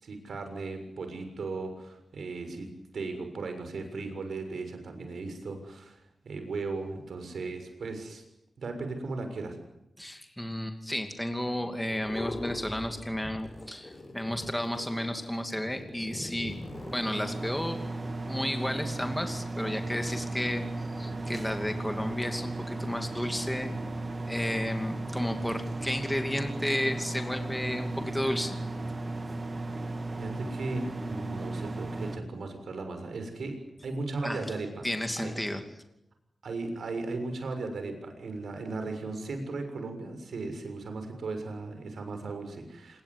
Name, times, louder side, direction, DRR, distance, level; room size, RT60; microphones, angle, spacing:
voice 1, 0.0-6.0 6.2-8.2 8.6-9.6 30.2-33.6 33.8-34.9 35.2-35.4 36.4-43.0, right 3 dB, 75° right, 7 dB, 6.7 m, -36 dB
voice 2, 10.0-16.6 16.9-17.8 18.3-20.6 21.0-23.7 24.3-28.6 34.2-34.5 34.8-35.6, left 1 dB, 5° left, 6 dB, 2.6 m, -32 dB
sound 1, 11.9-13.1 13.4-17.7, left 2 dB, 35° left, 6.0 m, -42 dB
sound 2, 16.5-32.2, right 2 dB, 35° right, 2.4 m, -35 dB
27.0 x 21.5 x 9.9 m, 0.85 s
wide cardioid pair, 115°, 0 cm